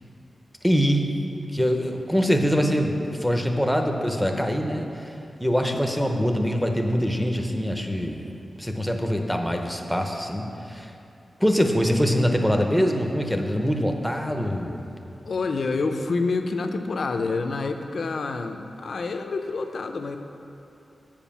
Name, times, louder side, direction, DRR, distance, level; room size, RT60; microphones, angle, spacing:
voice 1, 0.6-1.1 1.5-8.3 8.6-10.9 11.4-14.9, equal, ahead, 3 dB, 0.7 m, -24 dB
voice 2, 15.2-20.2, left 3 dB, 65° left, 6 dB, 0.5 m, -28 dB
7.2 x 5.0 x 7.2 m, 2.7 s
wide cardioid pair, 120°, 0 cm